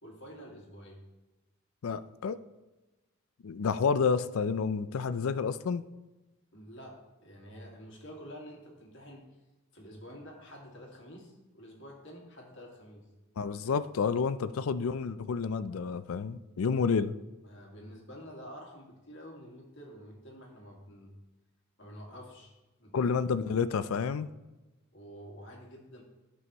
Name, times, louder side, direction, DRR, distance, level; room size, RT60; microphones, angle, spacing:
voice 1, 0.0-1.0 6.5-9.3 9.7-13.1 17.4-21.1 21.8-23.0 24.9-26.0, equal, 60° left, 0 dB, 2.0 m, -49 dB
voice 2, 1.8-2.4 3.4-5.8 13.4-17.1 22.9-24.3, left 5 dB, 80° left, 14 dB, 0.4 m, -29 dB
14.0 x 5.6 x 3.0 m, 1.1 s
head